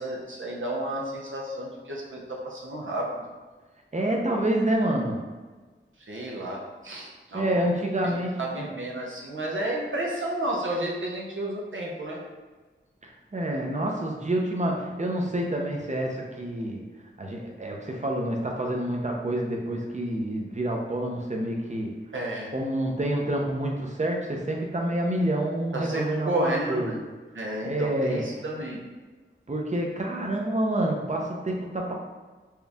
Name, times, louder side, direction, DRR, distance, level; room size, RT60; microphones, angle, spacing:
voice 1, 0.0-3.3 6.1-7.6 8.0-12.2 22.1-22.5 25.7-27.0 27.3-28.8, right 1 dB, 70° right, -3 dB, 0.8 m, -32 dB
voice 2, 3.9-5.2 7.3-8.7 13.0-16.8 17.2-21.9 22.5-27.0 27.6-28.2 29.5-31.9, right 1 dB, 35° right, 0 dB, 0.7 m, -28 dB
4.5 x 2.4 x 3.4 m, 1.3 s
wide cardioid pair, 45°, 21 cm